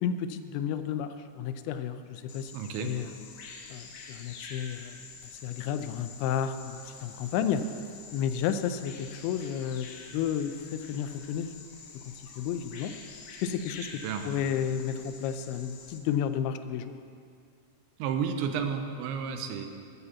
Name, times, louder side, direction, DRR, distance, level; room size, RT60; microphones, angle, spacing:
voice 1, 0.0-2.5 2.8-3.1 3.7-7.7 8.1-11.5 11.9-12.9 13.4-16.9, left 8 dB, 85° left, 10 dB, 2.9 m, -32 dB
Bird vocalization bird call bird song, 2.3-16.0, left 5 dB, 70° left, 2.5 m, -47 dB
voice 2, 2.5-2.9 14.0-14.4 18.0-19.7, right 7 dB, 90° right, 6 dB, 3.1 m, -32 dB
12.5 x 7.3 x 7.1 m, 2.3 s
omnidirectional pair, 5.2 m